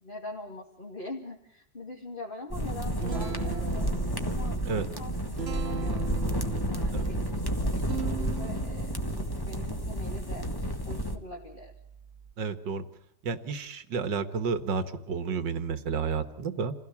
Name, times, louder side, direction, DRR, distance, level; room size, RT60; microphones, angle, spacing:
voice 1, 0.0-3.9 4.2-6.1 6.6-10.5 10.9-11.7, left 2 dB, 30° left, -1 dB, 2.6 m, -43 dB
sound 1, 2.5-11.2, equal, 15° left, 1.7 m, -31 dB
Guitar, 2.6-12.3, right 7 dB, 35° right, 1.8 m, -40 dB
voice 2, 12.4-12.8 13.2-16.8, right 5 dB, 80° right, 11 dB, 2.2 m, -31 dB
28.5 x 17.0 x 7.1 m, 0.79 s
omnidirectional pair, 1.9 m